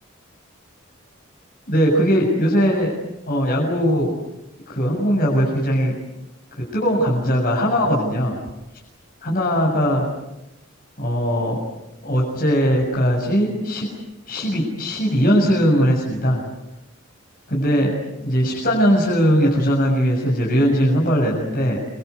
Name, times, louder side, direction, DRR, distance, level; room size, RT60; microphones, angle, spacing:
voice 1, 1.7-2.9 3.3-4.1 4.7-5.9 6.6-8.4 9.2-10.1 11.0-11.6 12.0-13.9 14.3-16.4 17.5-17.9 18.2-21.8, equal, 45° left, -3 dB, 7.1 m, -19 dB
28.5 x 24.5 x 8.3 m, 0.92 s
head